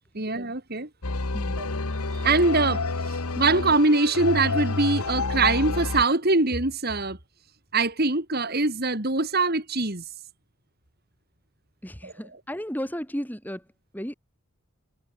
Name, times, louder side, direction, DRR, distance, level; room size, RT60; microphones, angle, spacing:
voice 1, 0.1-0.9 1.6-1.7 2.1-7.2 7.7-10.0 12.0-12.1, right 3 dB, 45° right, 3.0 m, -23 dB
sound 1, 1.0-6.0, left 3 dB, 90° left, 1.6 m, -29 dB
voice 2, 11.8-13.6 13.9-14.1, equal, 10° left, 4.1 m, -34 dB
head